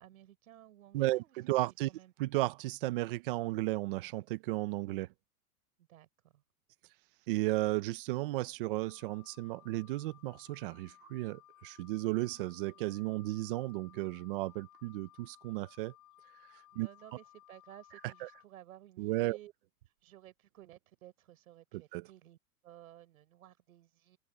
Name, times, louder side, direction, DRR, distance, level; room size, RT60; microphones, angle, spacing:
voice 1, 0.0-1.4 1.6-2.1 5.9-6.1 6.3-6.4 16.7-19.5 20.0-22.4 22.6-24.2, right 13 dB, 75° right, 5.5 m, -56 dB
voice 2, 0.9-1.9 2.2-5.1 7.3-15.9 16.8-16.9 19.0-19.4 21.7-22.1, right 19 dB, 40° right, 0.7 m, -34 dB
Wind instrument woodwind instrument, 8.8-18.5, left 15 dB, 10° left, 0.4 m, -60 dB
supercardioid pair, 165°, 43 cm